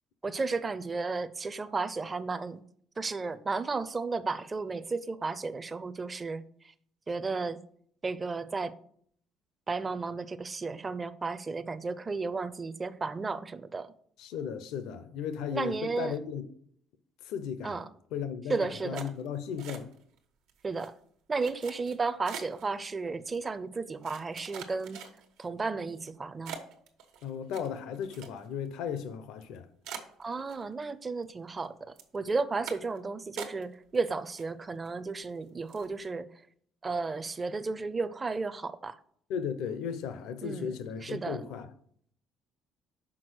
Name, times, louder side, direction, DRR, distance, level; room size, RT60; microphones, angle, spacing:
voice 1, 0.2-2.6 3.0-6.4 7.1-7.6 8.0-8.7 9.7-13.9 15.5-16.2 17.6-17.8 18.5-19.1 20.6-21.0 21.3-25.0 25.4-26.6 30.2-36.3 36.8-39.0 40.4-41.4, right 4 dB, 20° right, 0.4 m, -33 dB
voice 2, 14.2-16.4 17.2-17.8 18.1-19.9 27.2-29.7 39.3-41.7, left 7 dB, 80° left, 0.7 m, -36 dB
sound 1, 18.9-20.2 20.5-20.9 21.4-22.7 23.3-23.4 24.0-25.4 25.9-26.1 26.4-28.7 29.0-29.1 29.4-29.5 29.8-30.9 31.2-31.7 32.0-32.2 32.7-33.0 33.4-34.0 34.2-34.9 35.2-35.4 35.7-35.9, right 7 dB, 85° right, 1.2 m, -44 dB
6.1 x 4.7 x 6.3 m
cardioid pair, 140°, 0 cm